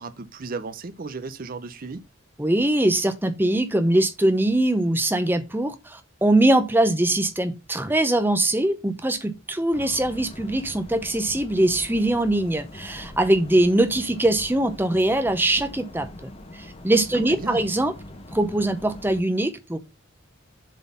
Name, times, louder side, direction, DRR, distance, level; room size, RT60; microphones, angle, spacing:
voice 1, 0.0-2.0 17.1-17.7, right 4 dB, 45° right, 0.6 m, -35 dB
voice 2, 2.4-16.1 16.5-17.9 18.3-19.8, right 1 dB, 10° right, 0.8 m, -22 dB
sound 1, 9.7-19.2, left 1 dB, 30° left, 1.0 m, -42 dB
7.4 x 4.0 x 5.4 m
head